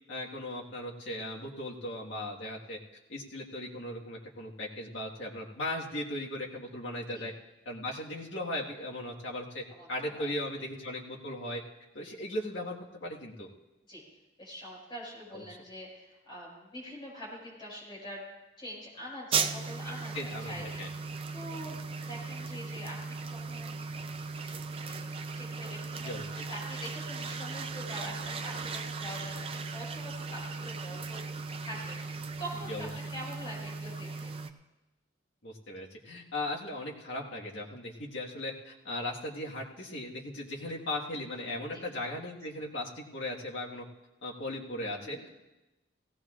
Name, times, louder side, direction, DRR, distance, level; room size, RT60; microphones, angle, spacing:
voice 1, 0.1-2.8 3.1-7.3 7.7-11.6 11.9-13.5 15.3-15.4 20.1-20.9 26.0-26.4 32.7-32.9 35.4-43.9 44.2-45.3, left 1 dB, 75° left, -2 dB, 1.7 m, -38 dB
voice 2, 9.7-10.3 13.9-14.0 14.4-18.2 18.6-20.9 21.3-23.7 24.8-25.0 25.3-26.1 26.5-32.0 32.4-34.3 41.7-41.8 45.0-45.3, equal, 25° left, -5 dB, 5.6 m, -44 dB
sound 1, 19.3-34.5, right 4 dB, 30° right, 0.5 m, -37 dB
17.5 x 17.0 x 2.5 m, 1.0 s
head